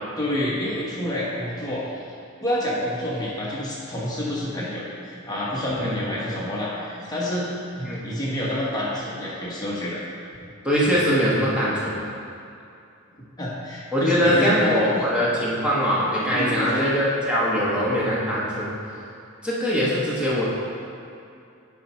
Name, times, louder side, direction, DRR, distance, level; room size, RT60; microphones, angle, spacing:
voice 1, 0.2-1.9 2.4-7.5 7.8-10.0 13.4-15.0 16.3-16.8, left 1 dB, 20° left, -7 dB, 1.2 m, -28 dB
voice 2, 10.6-12.0 13.9-18.7 19.4-20.4, equal, 5° right, -8 dB, 1.3 m, -22 dB
10.0 x 4.3 x 4.3 m, 2.6 s
head